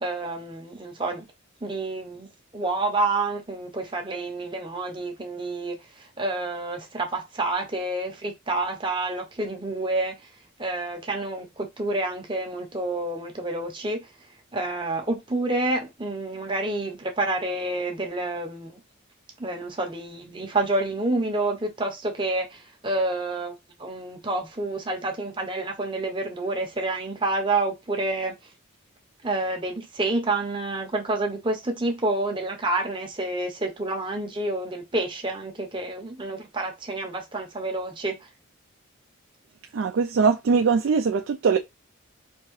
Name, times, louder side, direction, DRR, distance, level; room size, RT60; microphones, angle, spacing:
voice 1, 0.0-1.2 1.6-2.3 2.5-10.2 10.6-14.1 14.5-18.8 19.4-28.3 29.2-38.2, right 2 dB, 25° right, 0.7 m, -28 dB
voice 2, 39.7-41.6, right 5 dB, 65° right, 0.3 m, -21 dB
4.3 x 2.8 x 3.1 m
head